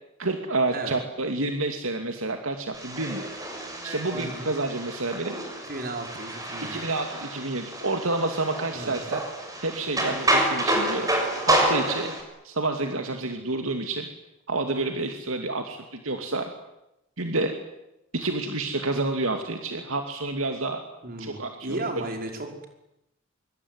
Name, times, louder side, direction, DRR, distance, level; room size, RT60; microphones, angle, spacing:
voice 1, 0.2-3.3 3.8-5.4 6.6-9.2 9.6-11.1 11.5-12.1 12.4-14.1 14.5-16.4 17.2-17.5 18.1-20.8 21.2-21.8, right 2 dB, 70° right, 5 dB, 2.6 m, -29 dB
sound 1, 2.7-12.2, right 1 dB, 15° right, 6.5 m, -28 dB
voice 2, 4.1-4.5 5.7-6.9 8.7-9.1 21.0-22.7, right 2 dB, 45° right, 4 dB, 5.5 m, -35 dB
25.5 x 24.0 x 9.7 m, 0.89 s
head